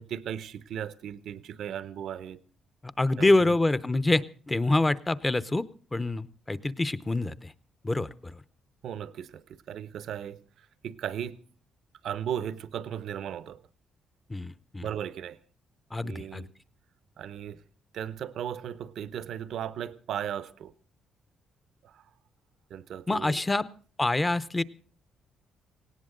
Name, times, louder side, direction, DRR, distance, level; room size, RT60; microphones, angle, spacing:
voice 1, 0.0-2.4 3.2-3.6 8.8-11.4 12.0-13.6 14.8-15.4 16.0-16.5 17.2-17.6 17.9-20.7 21.8-22.0 22.7-23.4, right 9 dB, 70° right, 0.8 m, -36 dB
voice 2, 3.0-5.6 5.9-7.5 7.8-8.4 14.3-14.9 15.9-16.4 23.1-23.6 24.0-24.6, left 2 dB, 15° left, 0.7 m, -26 dB
18.5 x 17.5 x 3.8 m
cardioid pair, 90°, 0 cm